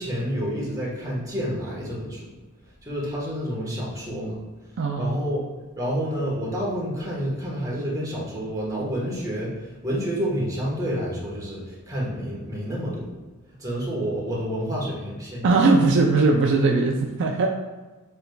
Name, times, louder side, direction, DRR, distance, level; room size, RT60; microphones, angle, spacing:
voice 1, 0.0-2.3 2.8-4.4 5.0-5.5 5.8-13.1 13.6-15.4, equal, 15° right, -5 dB, 1.3 m, -29 dB
voice 2, 4.8-5.1 15.4-17.5, right 3 dB, 55° right, 1 dB, 0.4 m, -19 dB
7.2 x 3.2 x 2.3 m, 1.2 s
head